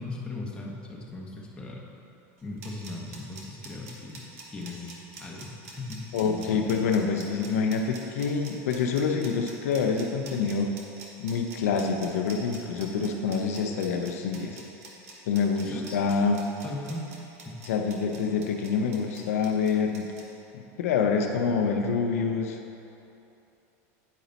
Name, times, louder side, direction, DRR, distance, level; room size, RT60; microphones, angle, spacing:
voice 1, 0.0-1.8 2.4-4.2 4.5-6.7 15.6-16.0 16.6-17.0 17.3-17.6, left 2 dB, 10° left, -4 dB, 1.3 m, -38 dB
sound 1, 2.4-20.2, right 3 dB, 90° right, 1.2 m, -46 dB
voice 2, 6.1-10.7 11.2-14.6 15.3-16.4 17.6-20.1 20.5-22.6, left 5 dB, 90° left, 4 dB, 0.6 m, -26 dB
9.2 x 5.0 x 4.1 m, 2.9 s
supercardioid pair, 115°, 8 cm